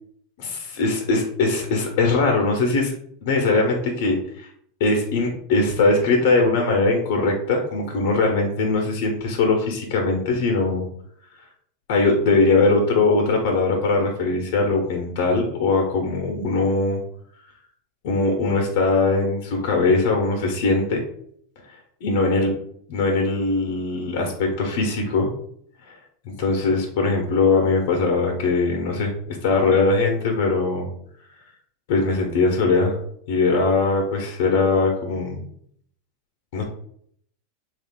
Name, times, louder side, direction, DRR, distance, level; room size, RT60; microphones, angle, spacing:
voice 1, 0.4-2.9 3.2-4.5 4.8-10.8 11.9-17.0 18.0-21.0 22.0-22.5 22.9-25.3 26.2-30.9 31.9-33.0 33.3-35.4 36.5-36.6, left 3 dB, 65° left, 2 dB, 0.8 m, -21 dB
3.2 x 2.4 x 3.6 m, 0.66 s
supercardioid pair, 140°, 0 cm